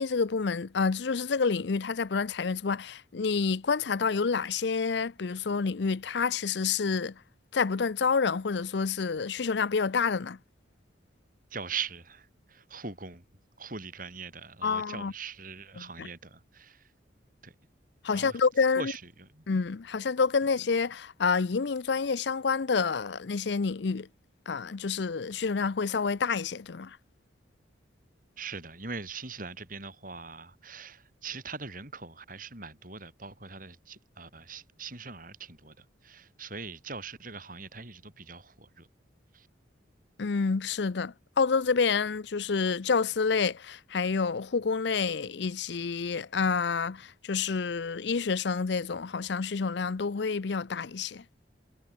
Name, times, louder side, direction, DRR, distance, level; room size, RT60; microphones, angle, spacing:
voice 1, 0.0-7.1 7.5-10.4 14.6-15.1 15.8-16.1 18.0-18.9 19.5-24.1 24.5-27.0 40.2-51.2, left 5 dB, 65° left, 0.6 m, -28 dB
voice 2, 11.5-13.2 13.6-16.8 17.4-17.5 18.1-18.4 18.8-19.4 28.4-38.9 39.3-39.5, right 5 dB, 45° right, 6.7 m, -41 dB
head